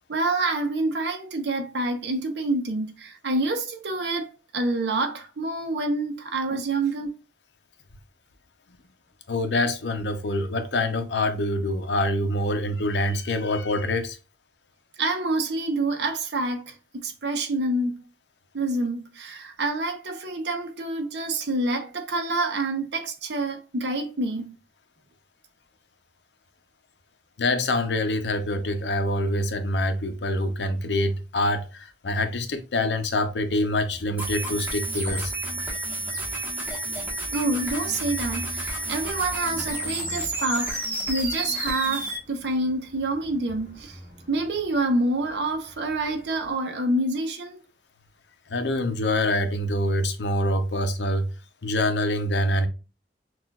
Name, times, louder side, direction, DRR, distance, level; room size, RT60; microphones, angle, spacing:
voice 1, 0.1-7.1 15.0-16.7 17.0-18.0 18.5-24.5 37.3-44.0 44.3-47.6, right 2 dB, 75° right, 0.8 m, -27 dB
voice 2, 9.3-14.2 27.4-35.3 48.5-51.3 51.6-52.7, left 1 dB, 80° left, 0.7 m, -25 dB
sound 1, 33.9-46.6, equal, 25° right, 2.3 m, -45 dB
sound 2, 34.2-42.2, right 2 dB, 10° right, 1.2 m, -31 dB
6.0 x 2.4 x 2.3 m
head